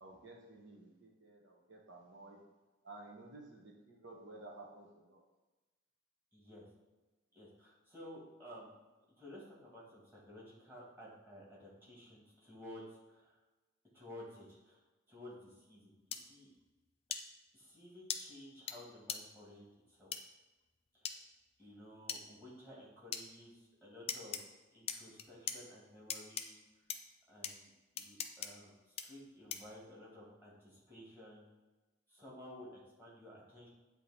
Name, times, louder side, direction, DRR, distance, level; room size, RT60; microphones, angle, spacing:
voice 1, 0.0-2.4 2.8-5.2, right 2 dB, 60° right, -1 dB, 0.9 m, -54 dB
voice 2, 6.3-6.7 7.3-8.7 9.2-13.4 13.9-14.8 15.1-16.5 17.5-20.1 20.9-21.2 21.6-24.4 24.7-26.6 27.3-31.4 32.1-33.7, left 1 dB, 10° right, -7 dB, 1.8 m, -54 dB
sound 1, 16.1-16.2 17.1-17.2 18.1-18.2 18.7-18.8 19.1-19.2 20.1-20.2 21.0-21.2 22.1-22.2 23.1-23.2 24.1-24.4 24.9-25.6 26.1-26.4 26.9-27.0 27.4-27.5 28.0-28.5 29.0-29.1 29.5-29.7, left 8 dB, 30° left, 0.3 m, -39 dB
8.3 x 2.8 x 4.1 m, 1.2 s
head